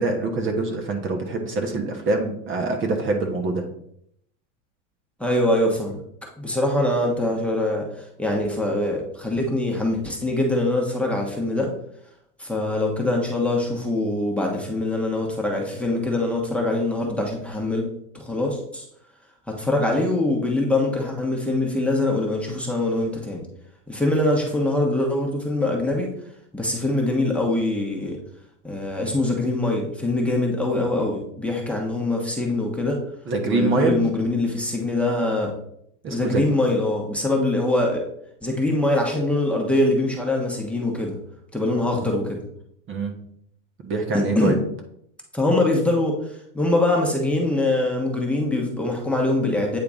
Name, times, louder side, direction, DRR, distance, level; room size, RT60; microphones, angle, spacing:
voice 1, 0.0-3.6 33.3-34.0 36.0-36.4 42.9-43.2 43.8-44.6, right 3 dB, 30° right, 4 dB, 1.2 m, -24 dB
voice 2, 5.2-6.0 6.4-11.7 12.4-17.8 18.1-18.8 19.5-23.4 23.9-26.1 26.5-28.2 28.6-33.0 33.4-35.5 36.1-38.0 38.4-41.2 41.5-42.4 44.1-44.6 45.3-46.2 46.5-49.8, left 2 dB, 5° left, -1 dB, 1.2 m, -23 dB
8.7 x 3.7 x 3.6 m, 0.71 s
supercardioid pair, 120°, 38 cm